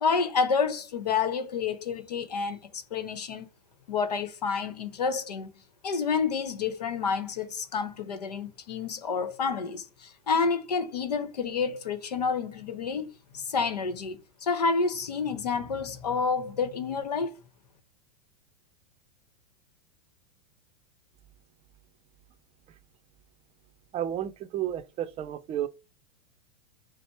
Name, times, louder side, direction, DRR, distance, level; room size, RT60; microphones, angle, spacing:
voice 1, 0.0-3.5 3.9-5.5 5.8-13.1 13.3-17.3, left 5 dB, 80° left, 0.9 m, -29 dB
voice 2, 23.9-25.7, right 11 dB, 30° right, 0.5 m, -32 dB
5.2 x 2.0 x 4.5 m
hypercardioid pair, 105°, 20 cm